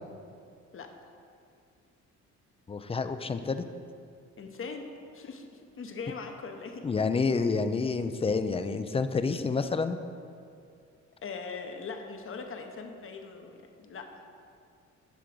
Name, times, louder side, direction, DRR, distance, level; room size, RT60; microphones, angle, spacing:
voice 1, 2.7-3.6 6.8-10.0, left 4 dB, 20° left, 10 dB, 0.4 m, -28 dB
voice 2, 4.4-4.9 5.1-6.9 11.2-14.1, left 4 dB, 45° left, 4 dB, 0.9 m, -40 dB
10.5 x 3.7 x 6.1 m, 2.4 s
cardioid pair, 90°, 30 cm